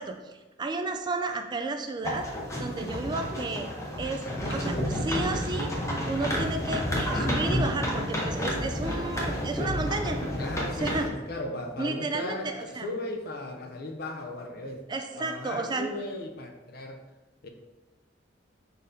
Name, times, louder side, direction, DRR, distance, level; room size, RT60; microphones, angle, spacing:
voice 1, 0.0-2.2 2.6-3.7 4.0-4.2 4.5-5.7 6.1-10.2 10.8-11.1 11.8-12.9 14.9-15.9, right 3 dB, 25° right, 5 dB, 0.3 m, -32 dB
sound 1, 2.0-11.1, equal, 15° left, 0.8 m, -30 dB
voice 2, 4.2-4.8 10.4-14.8 15.2-17.0 17.4-17.5, left 2 dB, 55° left, 4 dB, 0.6 m, -37 dB
5.0 x 4.0 x 2.6 m, 1.1 s
head